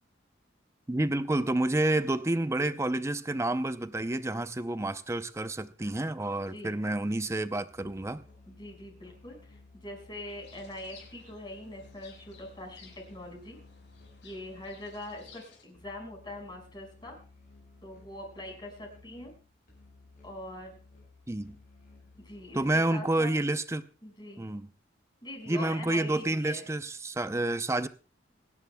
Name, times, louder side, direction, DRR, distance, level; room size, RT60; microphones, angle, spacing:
voice 1, 0.9-8.2 21.3-21.6 22.5-23.8 24.4-24.7 25.5-27.9, right 2 dB, 15° right, 0.6 m, -29 dB
Musical instrument, 7.7-23.0, left 3 dB, 50° left, 7.6 m, -56 dB
voice 2, 8.5-13.6 14.2-17.2 17.8-19.3 20.2-20.7 22.2-23.3 24.0-24.4 25.2-26.6, left 1 dB, 25° left, 5.6 m, -43 dB
sound 1, 10.3-15.6, left 5 dB, 80° left, 5.6 m, -57 dB
27.5 x 11.0 x 2.3 m
head